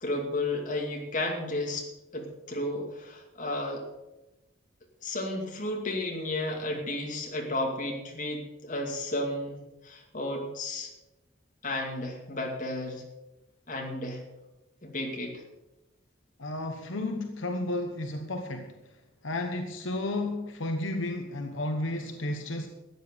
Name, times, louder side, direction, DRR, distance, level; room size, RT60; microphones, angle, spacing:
voice 1, 0.0-1.9 2.1-3.9 5.0-9.6 9.8-10.9 11.6-13.0 13.7-14.2 14.8-15.4, left 1 dB, 40° left, 1 dB, 2.4 m, -33 dB
voice 2, 16.4-18.7 19.2-22.7, left 2 dB, 75° left, 5 dB, 1.1 m, -32 dB
13.0 x 9.0 x 6.9 m, 0.99 s
head